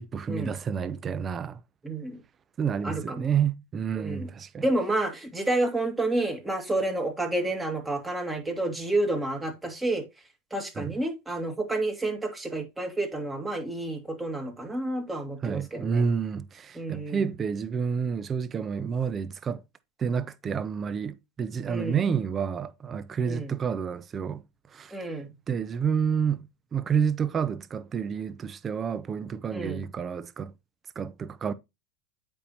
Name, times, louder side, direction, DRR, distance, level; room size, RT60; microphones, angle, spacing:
voice 1, 0.0-1.6 2.6-4.7 10.8-10.9 15.4-19.6 20.0-25.0 25.5-30.5 31.0-31.5, right 7 dB, 30° right, 0.6 m, -29 dB
voice 2, 1.8-2.2 2.8-3.2 4.0-4.3 4.6-10.0 10.5-16.0 16.8-17.3 21.7-22.0 23.2-23.5 24.9-25.3 29.5-29.8, right 2 dB, 10° right, 2.1 m, -30 dB
8.3 x 5.4 x 2.9 m
hypercardioid pair, 95°, 0 cm